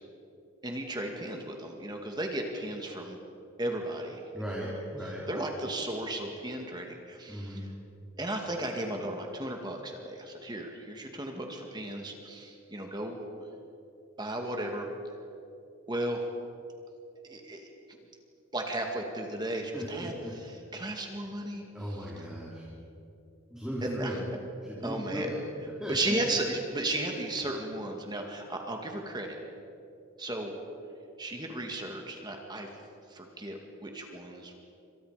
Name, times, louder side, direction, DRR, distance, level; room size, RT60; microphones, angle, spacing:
voice 1, 0.6-3.2 3.6-4.5 5.0-7.7 8.2-13.2 14.2-14.9 15.9-16.2 17.3-18.0 18.5-22.1 23.8-24.2 24.8-25.3 25.9-29.4 30.2-30.5 31.2-32.7 33.1-34.6, right 1 dB, 20° right, 2 dB, 2.2 m, -35 dB
voice 2, 4.3-5.2 7.3-7.6 19.7-20.3 21.7-22.7 23.5-24.2 24.6-25.4 25.8-26.0, equal, 5° right, -6 dB, 3.7 m, -37 dB
28.0 x 26.0 x 5.1 m, 2.8 s
head